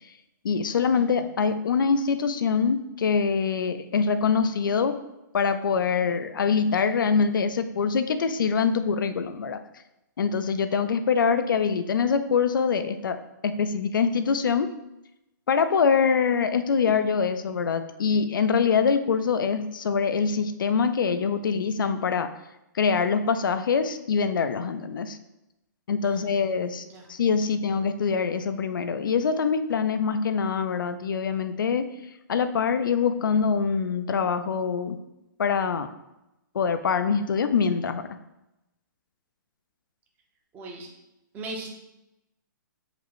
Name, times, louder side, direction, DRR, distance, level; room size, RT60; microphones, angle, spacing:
voice 1, 0.4-4.9 5.3-9.6 10.2-13.2 13.4-14.7 15.5-22.3 22.7-25.2 25.9-31.8 32.3-35.0 35.4-35.9 36.5-38.0, left 6 dB, 90° left, 10 dB, 0.4 m, -24 dB
voice 2, 26.0-26.4 26.8-27.0 40.5-40.9 41.3-41.7, right 2 dB, 15° right, 0 dB, 0.6 m, -38 dB
4.9 x 2.1 x 4.7 m, 0.91 s
hypercardioid pair, 160°, 11 cm